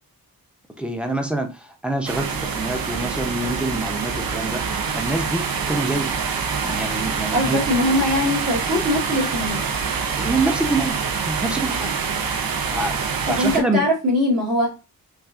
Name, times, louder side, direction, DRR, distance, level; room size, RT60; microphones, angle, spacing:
voice 1, 0.8-6.2 6.6-7.6 10.2-11.0 11.3-11.9 12.7-13.9, right 2 dB, 5° right, 4 dB, 0.7 m, -26 dB
sound 1, 2.0-13.6, right 5 dB, 65° right, 0.7 m, -26 dB
voice 2, 7.3-9.6 13.2-14.7, left 1 dB, 45° right, -6 dB, 1.6 m, -21 dB
5.8 x 2.6 x 2.5 m, 0.29 s
wide cardioid pair, 100°, 37 cm